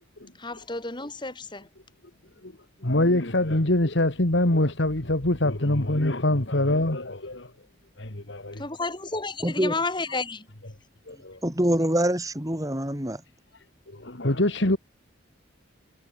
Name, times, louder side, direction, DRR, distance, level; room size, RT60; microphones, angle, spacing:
voice 1, 0.4-1.7 8.6-10.5, left 3 dB, 25° left, 3.5 m, -31 dB
voice 2, 2.8-7.5 8.0-8.6 11.1-11.4 13.9-14.8, left 1 dB, 65° left, 2.3 m, -24 dB
voice 3, 9.4-9.7 11.4-13.2, right 1 dB, 15° right, 4.2 m, -25 dB
head